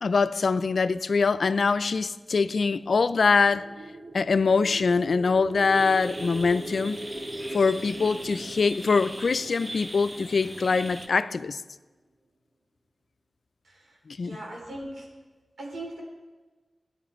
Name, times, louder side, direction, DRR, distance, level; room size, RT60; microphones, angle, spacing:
voice 1, 0.0-3.7 4.1-7.0 7.5-11.6 14.1-14.4, left 4 dB, 70° left, 0.4 m, -23 dB
sound 1, 3.3-11.4, right 1 dB, 60° right, 1.2 m, -40 dB
sound 2, 5.7-11.1, right 1 dB, 30° right, 1.1 m, -41 dB
voice 2, 13.6-15.1 15.6-16.0, right 1 dB, 85° right, 3.4 m, -40 dB
14.5 x 10.0 x 4.4 m
cardioid pair, 50°, 0 cm